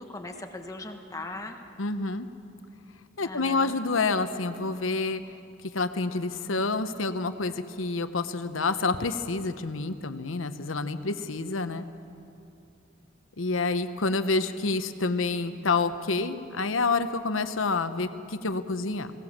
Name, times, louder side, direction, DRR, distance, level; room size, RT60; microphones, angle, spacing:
voice 1, 0.0-1.6 3.2-3.8, left 2 dB, 15° left, 4 dB, 1.3 m, -39 dB
voice 2, 1.8-2.3 3.2-5.2 5.7-11.8 13.4-19.1, left 3 dB, 90° left, 10 dB, 0.9 m, -28 dB
21.5 x 17.5 x 7.4 m, 2.6 s
head